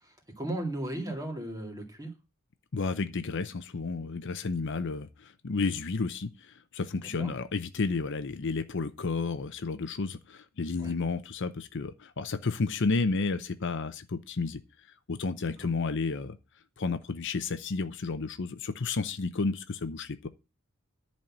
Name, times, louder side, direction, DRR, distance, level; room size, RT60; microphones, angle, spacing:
voice 1, 0.0-2.1 7.2-7.3 10.8-10.9 15.6-15.7, right 1 dB, 15° right, 2.3 m, -36 dB
voice 2, 2.7-14.6 15.1-16.4 16.8-20.3, left 4 dB, 55° left, 0.7 m, -31 dB
11.0 x 4.3 x 7.3 m
head